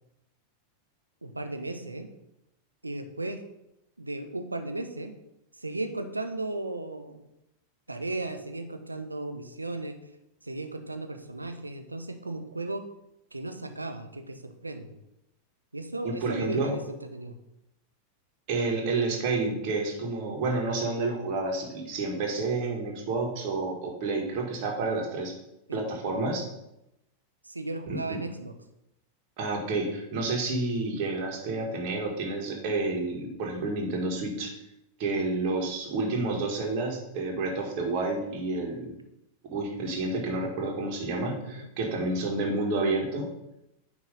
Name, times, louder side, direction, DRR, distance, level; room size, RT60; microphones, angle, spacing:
voice 1, 1.2-2.1 2.8-3.4 4.0-5.2 5.6-7.2 7.9-10.0 10.4-12.8 13.3-15.0 15.7-17.4 27.4-28.5 41.4-41.7, right 2 dB, 80° right, 6 dB, 0.7 m, -35 dB
voice 2, 16.0-16.8 18.5-25.3 25.7-26.4 27.9-28.2 29.4-34.5 35.0-39.0 39.5-43.3, right 3 dB, 45° right, 0 dB, 1.7 m, -29 dB
9.2 x 3.2 x 5.4 m, 0.85 s
figure-of-eight pair, 90°, 0 cm